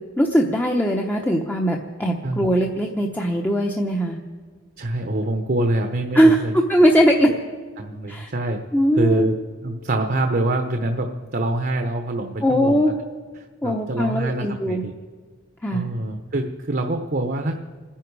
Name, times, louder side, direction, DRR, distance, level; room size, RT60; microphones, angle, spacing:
voice 1, 0.2-4.2 6.1-7.3 8.1-8.3 8.7-9.2 12.4-12.9 13.6-14.8 15.6-15.8, equal, 10° left, 0 dB, 0.9 m, -20 dB
voice 2, 4.8-6.5 7.3-7.4 7.8-8.6 8.9-9.4 9.6-12.9 13.3-14.9 15.7-17.6, right 1 dB, 45° right, 4 dB, 1.0 m, -25 dB
29.0 x 10.5 x 4.8 m, 1.5 s
head